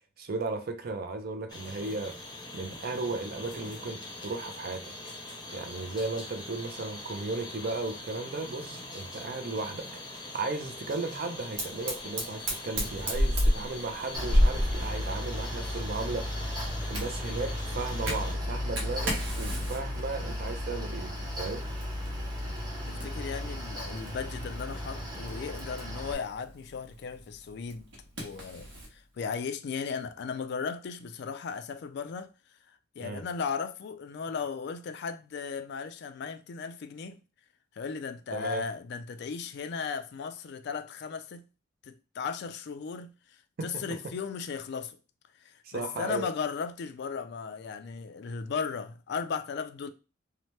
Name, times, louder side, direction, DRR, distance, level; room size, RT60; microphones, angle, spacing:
voice 1, 0.2-2.1 2.5-4.9 5.5-10.0 10.3-16.3 16.9-21.7 33.0-33.2 38.3-38.6 43.6-43.8 45.6-46.3, right 3 dB, 55° right, 0.5 m, -35 dB
sound 1, 1.5-18.4, left 2 dB, 20° left, 0.6 m, -43 dB
Fire, 11.6-28.9, equal, 80° right, 1.0 m, -34 dB
Mechanical fan, 14.1-26.1, left 1 dB, 20° right, 0.7 m, -35 dB
voice 2, 22.9-27.9 28.2-32.3 33.0-37.2 37.8-41.4 41.8-45.0 45.4-49.9, left 5 dB, 60° left, 0.3 m, -36 dB
2.8 x 2.1 x 3.1 m
head